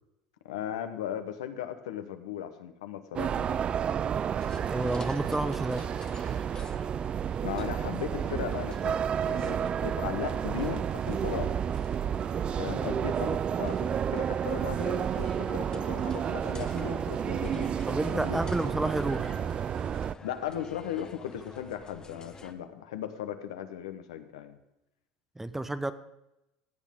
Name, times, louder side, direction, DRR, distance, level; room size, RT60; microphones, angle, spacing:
voice 1, 0.4-3.6 7.4-9.0 9.3-11.6 12.6-18.4 20.2-24.6, left 10 dB, 80° left, 8 dB, 1.1 m, -37 dB
sound 1, 3.2-20.1, right 8 dB, 35° right, 0.3 m, -31 dB
sound 2, 4.4-22.5, left 4 dB, 25° left, 1.2 m, -49 dB
voice 2, 4.7-5.8 8.9-9.0 17.9-19.4 25.4-25.9, right 2 dB, 10° right, 12 dB, 0.8 m, -30 dB
16.0 x 8.4 x 3.7 m, 0.89 s
hypercardioid pair, 80°, 3 cm